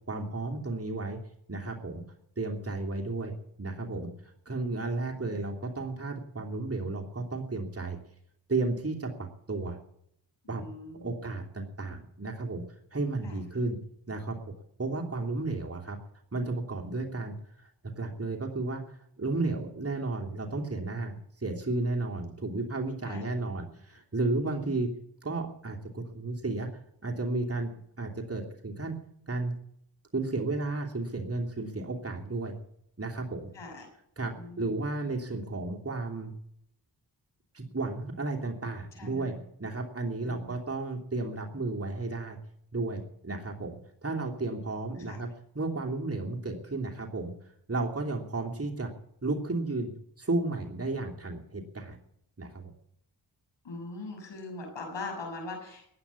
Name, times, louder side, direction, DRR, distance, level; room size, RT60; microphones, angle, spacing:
voice 1, 0.1-1.2 1.5-2.0 2.4-3.3 3.6-4.1 4.5-8.0 8.5-9.8 10.5-10.6 11.0-12.6 12.9-13.8 14.1-14.4 14.8-16.0 16.3-17.3 17.9-24.9 25.2-26.7 27.0-27.7 28.0-28.9 29.3-29.6 30.1-32.5 33.0-33.5 34.2-36.3 37.5-39.3 39.6-42.4 42.7-43.8 44.0-45.3 45.5-47.3 47.7-48.9 49.2-49.9 50.2-52.0 52.4-52.7, right 2 dB, 35° right, 1 dB, 2.9 m, -33 dB
voice 2, 10.4-11.2 13.2-13.4 23.0-23.2 24.4-24.7 33.5-33.9 34.3-34.8 38.9-39.4 40.2-40.5 45.0-45.2 53.6-55.9, left 2 dB, 90° left, 2 dB, 6.5 m, -42 dB
15.5 x 9.7 x 8.6 m, 0.72 s
cardioid pair, 45°, 43 cm